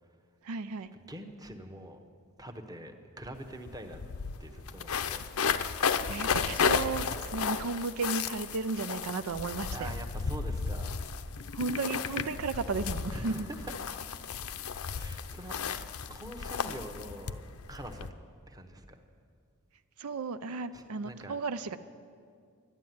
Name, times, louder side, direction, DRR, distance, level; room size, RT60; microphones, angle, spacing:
voice 1, 0.4-0.9 4.9-5.1 6.1-9.9 11.5-13.5 20.0-21.8, right 4 dB, 80° right, 11 dB, 0.5 m, -34 dB
voice 2, 1.1-2.0 2.4-4.0 4.4-5.3 9.7-11.0 13.1-13.6 14.9-15.5 16.1-17.4 17.7-18.1 18.5-19.0 20.7-21.4, right 1 dB, 15° right, 5 dB, 1.0 m, -44 dB
sound 1, 3.3-3.4 3.7-18.1, left 6 dB, 75° left, 0.6 m, -33 dB
12.5 x 11.5 x 9.3 m, 2.2 s
head